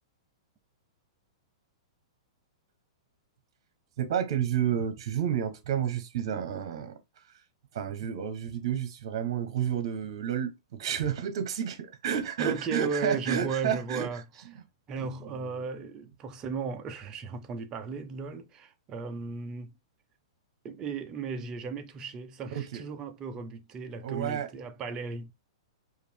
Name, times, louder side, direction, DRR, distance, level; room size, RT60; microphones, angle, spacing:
voice 1, 4.0-6.9 7.7-14.1 15.0-15.6 22.5-22.8 24.0-24.5, right 9 dB, 60° right, 1.1 m, -30 dB
voice 2, 12.4-14.2 14.9-19.7 20.6-25.3, right 5 dB, 25° right, 0.7 m, -36 dB
4.8 x 2.7 x 3.4 m
hypercardioid pair, 135°, 3 cm